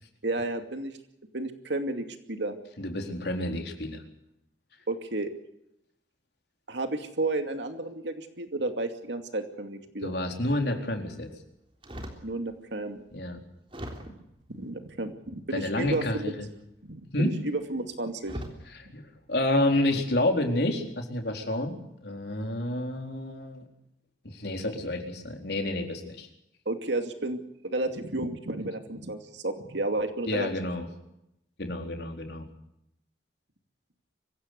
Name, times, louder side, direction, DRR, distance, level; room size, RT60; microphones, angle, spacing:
voice 1, 0.2-1.0 1.3-2.6 4.9-5.3 6.7-10.1 12.2-13.0 14.5-16.3 16.9-18.4 26.7-30.5, right 2 dB, 75° right, 6 dB, 2.5 m, -32 dB
voice 2, 2.8-4.0 10.0-11.3 13.1-13.4 15.5-16.5 17.1-17.3 18.9-21.8 22.0-23.6 24.2-26.3 30.3-30.9 31.6-32.4, left 1 dB, 60° left, 3 dB, 4.1 m, -29 dB
sound 1, 11.8-12.3 13.0-13.1 13.7-14.3 15.7-16.5 17.6-17.8 18.2-18.7 19.3-19.6, equal, 30° right, 3.6 m, -40 dB
24.5 x 16.0 x 8.2 m, 0.81 s
head